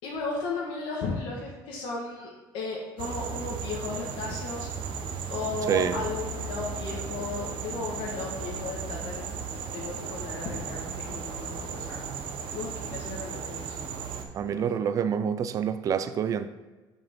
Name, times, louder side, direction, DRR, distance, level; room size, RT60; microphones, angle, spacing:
voice 1, 0.0-4.7 5.3-9.2 9.7-12.0 12.5-13.8 14.5-14.9, left 3 dB, 80° left, 1.5 m, -35 dB
sound 1, 3.0-14.2, right 5 dB, 65° right, 0.9 m, -35 dB
voice 2, 14.3-16.5, right 8 dB, 40° right, 0.4 m, -27 dB
6.9 x 5.9 x 3.6 m
cardioid pair, 150°, 9 cm